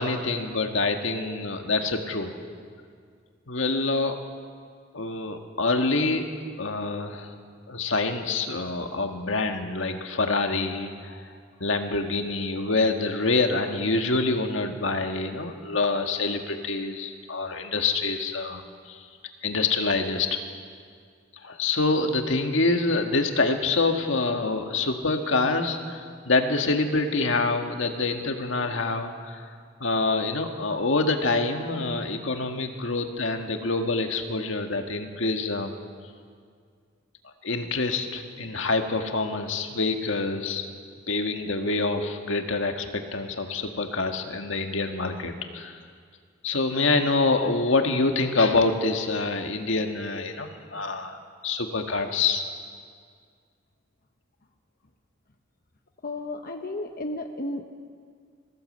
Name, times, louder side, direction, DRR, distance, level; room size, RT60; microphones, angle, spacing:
voice 1, 0.0-2.3 3.5-4.2 4.9-6.3 6.6-7.3 7.7-11.2 11.6-19.1 19.4-20.4 21.4-29.5 29.8-35.7 37.4-40.7 41.1-45.8 46.4-51.2 51.4-52.4, left 3 dB, 75° left, 5 dB, 1.7 m, -26 dB
voice 2, 56.0-57.6, left 2 dB, 45° left, 4 dB, 1.0 m, -33 dB
21.0 x 16.0 x 7.9 m, 2.1 s
head